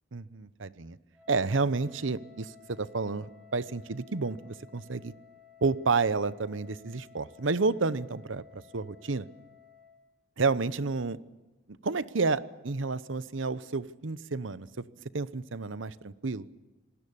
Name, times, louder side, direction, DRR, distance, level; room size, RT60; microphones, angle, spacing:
voice 1, 0.1-1.0 1.3-5.1 5.6-9.3 10.4-11.2 11.8-14.8 15.1-16.5, right 4 dB, 70° right, 15 dB, 0.9 m, -30 dB
Wind instrument woodwind instrument, 1.1-10.0, left 9 dB, 5° right, 6.6 m, -56 dB
27.0 x 20.0 x 8.6 m, 1.1 s
head